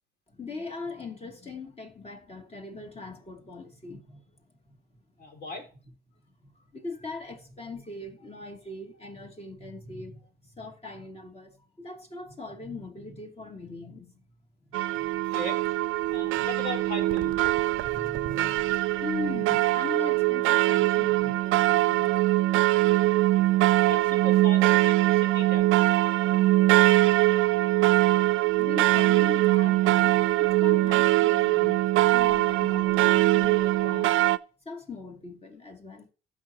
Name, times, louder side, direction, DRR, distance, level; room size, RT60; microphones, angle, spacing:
voice 1, 0.3-4.2 4.6-4.8 6.4-10.2 10.4-14.2 14.9-15.2 16.0-16.5 17.8-22.1 28.6-34.2 34.6-36.1, left 3 dB, 30° left, 2.5 m, -40 dB
voice 2, 5.2-5.7 15.3-15.6 16.1-17.4 23.8-25.8, left 1 dB, 60° left, 4.2 m, -38 dB
sound 1, 14.7-34.4, right 17 dB, 85° right, 0.4 m, -22 dB
15.5 x 6.0 x 2.8 m
cardioid pair, 90°, 20 cm